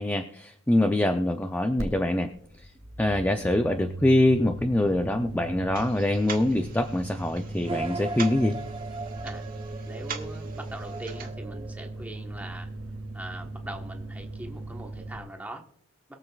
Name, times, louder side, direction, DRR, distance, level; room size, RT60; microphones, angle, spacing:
voice 1, 0.0-2.3 3.0-8.6, left 1 dB, 10° left, 5 dB, 0.5 m, -24 dB
sound 1, 1.8-15.2, right 1 dB, 65° right, 2.4 m, -38 dB
sound 2, 5.7-11.3, right 6 dB, 40° right, 1.4 m, -43 dB
sound 3, 7.6-12.5, right 3 dB, 25° right, 0.8 m, -39 dB
voice 2, 9.8-12.7 13.1-15.6, right 1 dB, 5° right, 2 dB, 1.2 m, -41 dB
22.5 x 7.6 x 2.4 m, 0.63 s
head